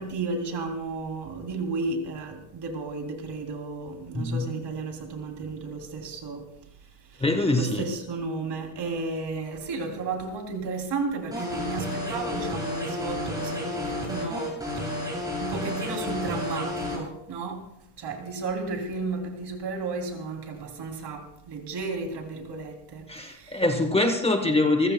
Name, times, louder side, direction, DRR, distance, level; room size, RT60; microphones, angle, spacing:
voice 1, 0.0-6.5 7.1-7.2 7.5-17.6 18.0-23.6, right 3 dB, 55° right, 3.0 m, -33 dB
voice 2, 4.1-4.5 7.2-7.8 23.1-24.9, left 2 dB, 10° left, 1.0 m, -24 dB
sound 1, 11.3-17.0, left 1 dB, 5° right, 7.1 m, -31 dB
28.0 x 15.0 x 2.2 m
cardioid pair, 155°, 49 cm